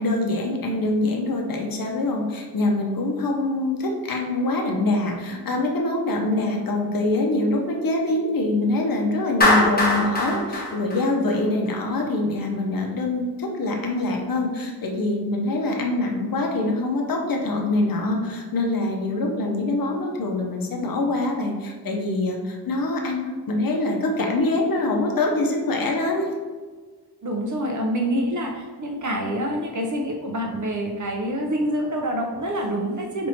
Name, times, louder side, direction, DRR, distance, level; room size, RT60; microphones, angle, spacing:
voice 1, 0.0-26.3, left 2 dB, 60° left, 1 dB, 0.6 m, -24 dB
Clapping, 9.4-11.7, left 2 dB, 25° left, 0.8 m, -21 dB
voice 2, 27.2-33.3, equal, 50° right, 1 dB, 0.5 m, -26 dB
2.8 x 2.6 x 4.3 m, 1.4 s
wide cardioid pair, 90°, 39 cm